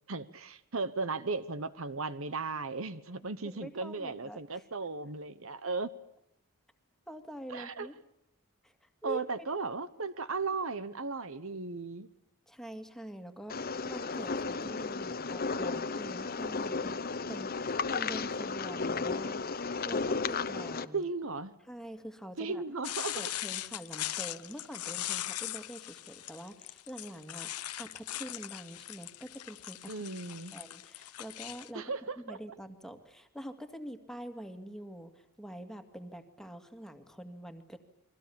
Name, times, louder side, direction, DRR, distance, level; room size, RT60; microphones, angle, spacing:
voice 1, 0.1-5.9 7.5-7.9 9.0-12.1 20.9-21.5 22.4-23.2 29.9-30.5 31.7-32.4, right 4 dB, 60° right, 14 dB, 1.1 m, -36 dB
voice 2, 3.4-4.6 7.1-7.9 8.6-9.2 12.5-17.0 17.3-21.1 21.7-22.6 23.1-27.5 27.8-30.0 30.4-31.8 32.2-37.8, equal, ahead, 7 dB, 2.1 m, -45 dB
sound 1, 13.5-20.9, left 4 dB, 40° left, 1.0 m, -34 dB
sound 2, 22.8-31.7, left 14 dB, 85° left, 1.0 m, -40 dB
30.0 x 22.5 x 7.1 m, 0.80 s
head